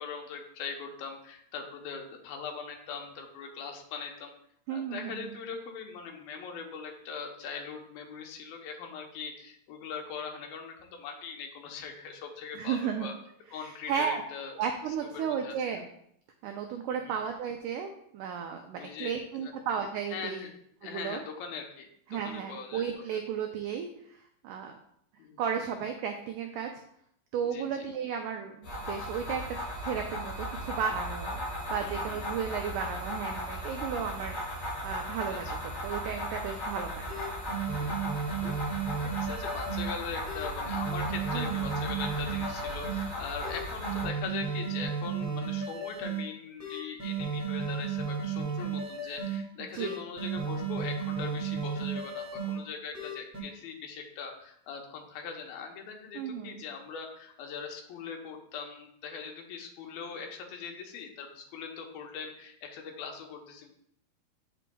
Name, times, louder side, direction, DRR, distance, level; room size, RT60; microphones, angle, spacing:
voice 1, 0.0-4.3 4.7-13.1 13.5-14.6 15.1-15.6 16.9-17.1 18.8-19.5 20.1-20.5 20.8-22.8 25.2-25.4 27.5-27.9 31.8-32.4 35.3-35.4 37.8-38.0 38.4-38.5 38.9-63.7, left 6 dB, 80° left, 2 dB, 2.7 m, -41 dB
voice 2, 4.7-5.2 12.6-13.1 13.5-14.2 14.6-15.9 16.4-20.5 20.8-21.2 22.1-24.8 25.4-26.7 27.3-29.4 29.8-31.4 31.7-37.0 41.3-41.6 49.6-50.0 56.1-56.6, right 7 dB, 85° right, 4 dB, 1.8 m, -34 dB
sound 1, 28.6-44.0, equal, 45° left, 2.5 m, -37 dB
sound 2, 37.1-39.9 40.2-43.0 43.4-46.2 46.6-49.4 49.8-52.5 52.9-53.4, right 5 dB, 10° right, 1.1 m, -34 dB
8.7 x 6.3 x 2.3 m, 0.70 s
omnidirectional pair, 4.2 m